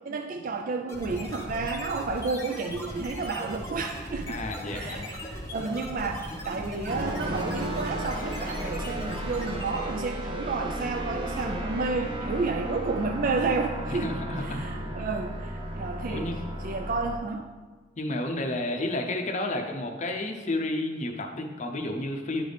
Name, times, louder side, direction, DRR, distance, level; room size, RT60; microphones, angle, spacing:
voice 1, 0.0-4.4 4.7-14.1 14.5-16.3 16.6-17.5, right 4 dB, 45° right, 5 dB, 0.4 m, -31 dB
sound 1, 0.9-10.1, left 1 dB, 15° left, 1.0 m, -38 dB
voice 2, 4.3-5.1 13.9-14.7 16.1-16.4 18.0-22.4, left 1 dB, 40° left, 3 dB, 0.6 m, -31 dB
sound 2, 6.9-17.2, equal, 25° right, 0.8 m, -34 dB
10.5 x 4.0 x 3.3 m, 1.4 s
head